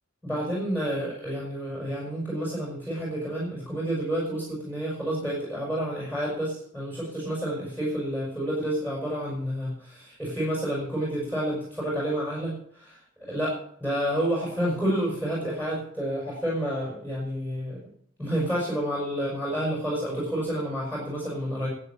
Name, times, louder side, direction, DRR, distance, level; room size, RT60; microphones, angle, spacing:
voice 1, 0.2-17.8 18.2-21.7, equal, 10° right, -5 dB, 6.0 m, -29 dB
13.0 x 8.9 x 7.3 m, 0.64 s
head